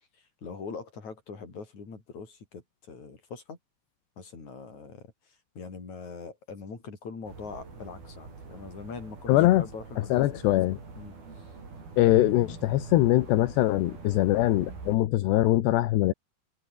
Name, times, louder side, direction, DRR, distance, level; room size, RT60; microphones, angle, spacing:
voice 1, 0.1-3.6 4.2-10.4 10.9-11.5, left 5 dB, 45° left, 6.6 m, -43 dB
sound 1, 7.2-15.0, right 4 dB, 60° right, 9.2 m, -44 dB
voice 2, 9.3-9.6 10.1-10.8 12.0-16.1, left 15 dB, 80° left, 3.3 m, -22 dB
omnidirectional pair, 4.9 m